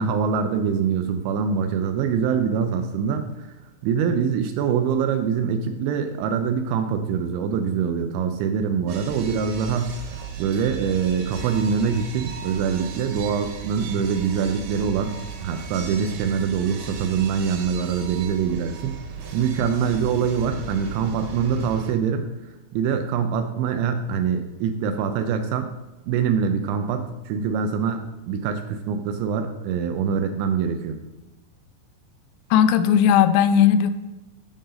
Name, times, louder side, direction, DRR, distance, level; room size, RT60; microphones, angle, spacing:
voice 1, 0.0-3.3 3.8-10.0 10.4-15.1 15.4-19.0 19.3-22.3 22.7-25.7 26.1-31.0, right 6 dB, 80° right, 7 dB, 2.7 m, -24 dB
sound 1, 8.9-21.9, right 5 dB, 65° right, 2.7 m, -37 dB
voice 2, 32.5-33.9, left 9 dB, 85° left, 10 dB, 3.2 m, -17 dB
15.0 x 5.3 x 3.9 m, 1.1 s
omnidirectional pair, 5.8 m